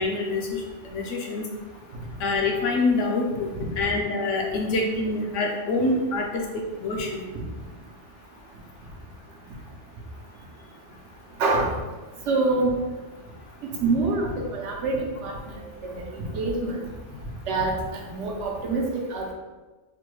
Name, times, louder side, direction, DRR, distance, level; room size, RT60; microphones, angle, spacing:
voice 1, 0.0-1.4 2.2-7.2, left 3 dB, 80° left, 1 dB, 0.9 m, -26 dB
voice 2, 11.4-11.7 12.3-12.7 13.8-15.3 15.8-16.8 17.5-17.8 18.1-19.3, right 3 dB, 80° right, -1 dB, 1.0 m, -25 dB
3.2 x 2.2 x 3.1 m, 1.2 s
omnidirectional pair, 1.2 m